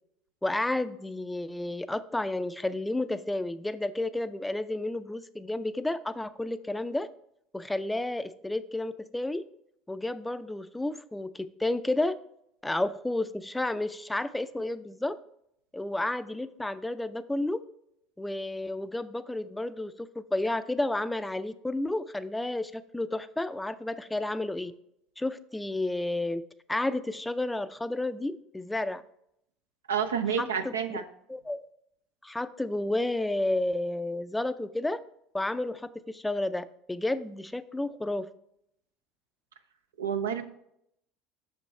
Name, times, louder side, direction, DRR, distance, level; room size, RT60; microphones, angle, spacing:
voice 1, 0.4-7.1 7.5-9.4 9.9-12.2 12.6-15.2 15.7-17.6 18.2-24.7 25.2-26.4 26.7-29.0 30.4-31.0 31.3-31.7 32.2-35.0 35.3-38.3, left 2 dB, 10° left, 13 dB, 0.4 m, -31 dB
voice 2, 29.9-31.0 40.0-40.4, right 7 dB, 85° right, 7 dB, 0.6 m, -29 dB
6.4 x 5.2 x 4.3 m, 0.75 s
hypercardioid pair, 70°, 0 cm